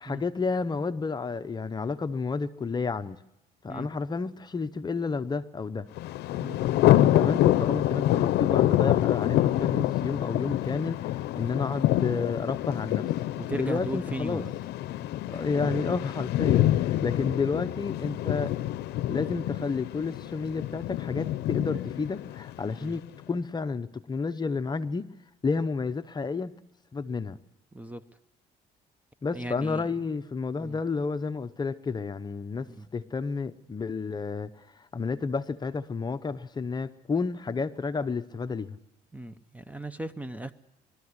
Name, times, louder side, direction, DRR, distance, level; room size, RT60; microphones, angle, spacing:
voice 1, 0.0-3.2 3.6-5.9 6.8-13.1 13.6-14.4 15.3-18.6 19.1-25.1 25.4-26.6 26.9-27.4 29.2-38.8, left 4 dB, 25° left, 11 dB, 0.8 m, -31 dB
Thunder, 6.0-22.9, left 14 dB, 75° left, 0.6 m, -26 dB
voice 2, 13.4-14.5 17.0-17.2 22.8-23.0 27.7-28.0 29.3-29.9 30.6-30.8 32.7-32.9 39.1-40.5, right 1 dB, 10° right, 13 dB, 0.7 m, -37 dB
22.0 x 13.0 x 9.6 m, 0.88 s
cardioid pair, 110°, 17 cm